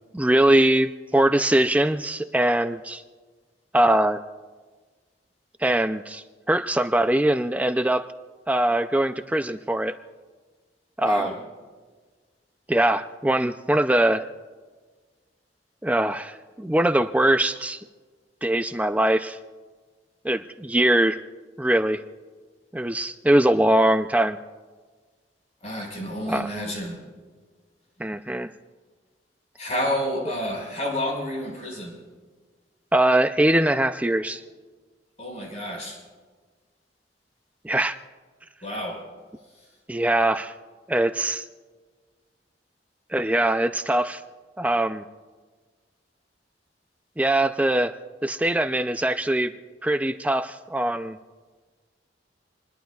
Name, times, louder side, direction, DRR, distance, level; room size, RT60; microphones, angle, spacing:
voice 1, 0.1-3.0 3.7-4.2 5.6-8.1 8.5-9.9 11.0-11.3 12.7-14.2 15.8-17.8 18.4-19.4 20.2-21.2 21.6-22.0 22.7-24.4 26.3-26.5 28.0-28.5 32.9-34.4 37.6-38.0 39.9-40.5 40.9-41.5 43.1-44.2 44.6-45.0 47.2-47.9 48.2-49.5 49.8-51.2, right 1 dB, 10° right, 8 dB, 0.4 m, -22 dB
voice 2, 11.1-11.4 25.6-27.0 29.6-32.0 35.2-36.0 38.6-39.1, equal, 40° left, 0 dB, 5.3 m, -30 dB
27.0 x 20.5 x 2.4 m, 1.4 s
head